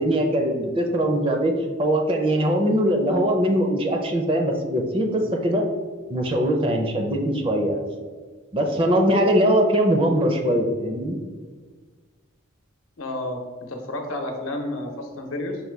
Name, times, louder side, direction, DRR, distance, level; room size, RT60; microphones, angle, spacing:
voice 1, 0.0-1.5 1.8-5.7 6.1-7.8 8.5-11.2, equal, 25° right, 3 dB, 0.4 m, -21 dB
voice 2, 13.0-13.4 13.7-15.6, left 1 dB, 80° left, 2 dB, 0.8 m, -30 dB
5.3 x 2.2 x 4.5 m, 1.5 s
head